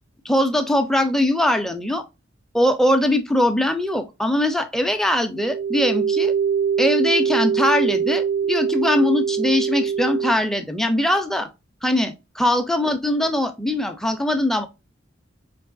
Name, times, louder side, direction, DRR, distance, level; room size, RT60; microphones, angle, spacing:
voice 1, 0.2-2.0 2.5-6.3 6.8-11.5 11.8-14.7, left 1 dB, ahead, 0.4 m, -21 dB
sound 1, 5.4-10.3, right 7 dB, 85° right, 0.4 m, -23 dB
4.6 x 2.8 x 2.4 m
head